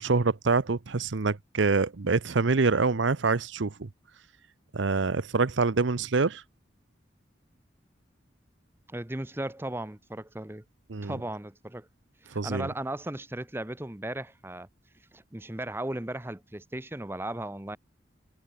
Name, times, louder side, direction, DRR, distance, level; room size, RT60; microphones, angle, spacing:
voice 1, 0.0-3.9 4.7-6.4 10.9-11.2 12.3-12.7, right 4 dB, 80° right, 0.8 m, -26 dB
voice 2, 8.9-10.6 11.0-11.9 12.2-14.7 15.1-17.8, right 1 dB, 10° right, 0.8 m, -36 dB
head